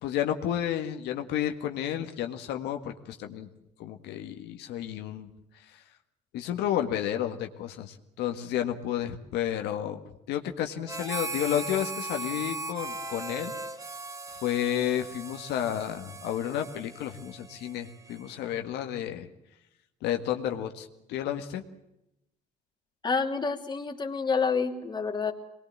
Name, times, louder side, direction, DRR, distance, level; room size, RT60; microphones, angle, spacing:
voice 1, 0.0-3.5 3.8-5.3 6.3-10.0 10.3-13.5 14.4-19.3 20.0-21.6, left 10 dB, 85° left, 5 dB, 1.8 m, -31 dB
Harmonica, 10.9-18.6, right 2 dB, 20° right, 1.5 m, -39 dB
voice 2, 23.0-25.3, left 5 dB, 25° left, 3 dB, 2.9 m, -28 dB
24.0 x 21.0 x 7.4 m, 0.87 s
cardioid pair, 110°, 17 cm